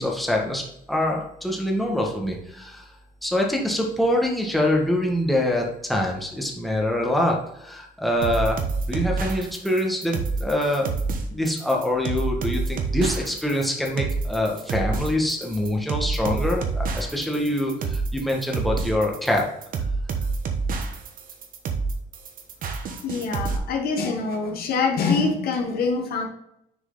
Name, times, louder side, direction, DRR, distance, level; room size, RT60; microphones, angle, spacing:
voice 1, 0.0-2.8 3.2-8.6 8.9-10.9 11.3-19.4, left 1 dB, ahead, -1 dB, 1.5 m, -25 dB
sound 1, 8.2-23.6, right 4 dB, 55° right, 1.1 m, -28 dB
voice 2, 23.0-26.3, left 4 dB, 65° left, 3 dB, 1.3 m, -24 dB
6.8 x 4.6 x 4.0 m, 0.77 s
cardioid pair, 110°, 17 cm